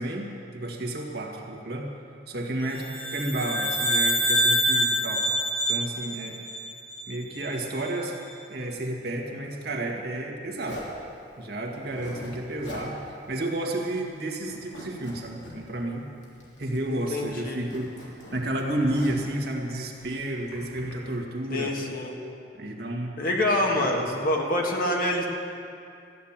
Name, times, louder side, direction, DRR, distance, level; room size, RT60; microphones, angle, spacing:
voice 1, 0.0-1.9 2.3-5.3 5.7-6.4 7.1-8.2 8.5-10.8 11.4-16.1 16.6-21.7 22.6-23.2 23.7-24.0, right 1 dB, 60° right, 0 dB, 1.8 m, -31 dB
sound 1, 2.8-7.3, equal, 20° left, 2.0 m, -26 dB
Zipper (clothing), 10.6-11.0 11.8-12.3 12.6-12.9 13.3-13.4 13.7-14.1 14.4-15.5 16.2-16.9 17.1-19.3 19.9-20.9, left 1 dB, 80° left, 3.2 m, -44 dB
voice 2, 16.9-17.6 21.5-22.1 23.2-25.3, left 1 dB, 50° left, 0 dB, 1.8 m, -26 dB
14.0 x 9.6 x 7.4 m, 2.5 s
head